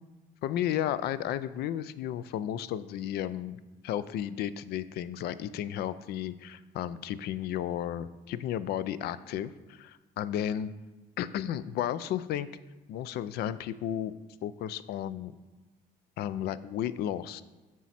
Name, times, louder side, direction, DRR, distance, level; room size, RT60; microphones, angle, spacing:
voice 1, 0.4-10.7 11.2-12.5 12.9-14.1 14.4-15.4 16.2-17.4, left 11 dB, 70° left, 15 dB, 0.4 m, -33 dB
7.3 x 6.1 x 4.2 m, 1.2 s
cardioid pair, 110°, 17 cm